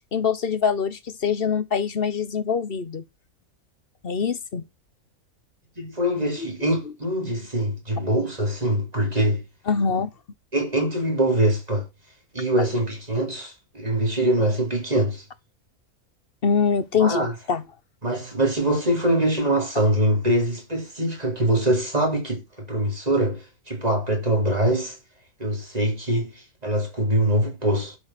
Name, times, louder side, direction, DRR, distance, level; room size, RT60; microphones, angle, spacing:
voice 1, 0.1-3.0 4.0-4.6 9.7-10.1 16.4-17.2 17.5-17.6, left 6 dB, 45° left, 1.1 m, -23 dB
voice 2, 5.8-9.4 10.5-11.9 12.3-15.2 17.0-17.3 18.0-25.0 25.4-28.0, right 1 dB, 25° right, 3.7 m, -23 dB
11.5 x 5.7 x 6.0 m
omnidirectional pair, 1.5 m